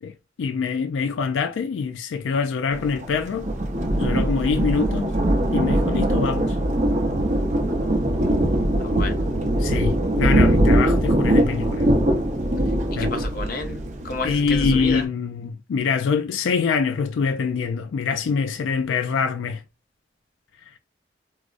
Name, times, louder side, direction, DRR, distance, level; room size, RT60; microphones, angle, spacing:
voice 1, 0.4-3.5 4.0-5.1 5.5-6.6 9.6-11.9 13.0-13.1 14.2-19.6, left 5 dB, 90° left, 0.3 m, -24 dB
Thunder, 2.7-15.0, right 1 dB, 40° right, 0.6 m, -22 dB
voice 2, 13.0-13.8 14.0-15.0, left 3 dB, 50° left, 0.7 m, -30 dB
4.7 x 2.0 x 2.4 m
head